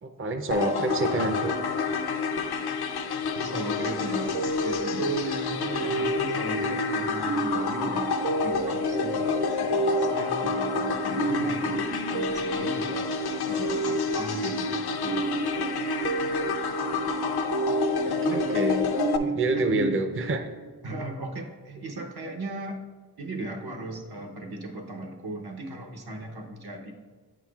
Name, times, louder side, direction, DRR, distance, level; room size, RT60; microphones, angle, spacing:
voice 1, 0.0-1.5 18.0-18.8 19.3-20.5, right 2 dB, 35° right, 6 dB, 0.5 m, -27 dB
sound 1, 0.5-19.2, left 5 dB, 80° left, 0.5 m, -29 dB
voice 2, 3.3-13.2 13.5-16.0 16.9-17.3 18.3-18.5 19.2-19.9 20.8-22.8 23.2-27.0, right 2 dB, 70° right, 1 dB, 0.9 m, -37 dB
sound 2, 4.3-20.7, right 4 dB, 90° right, 0.5 m, -32 dB
8.2 x 5.8 x 2.3 m, 1.4 s
wide cardioid pair, 50°, 38 cm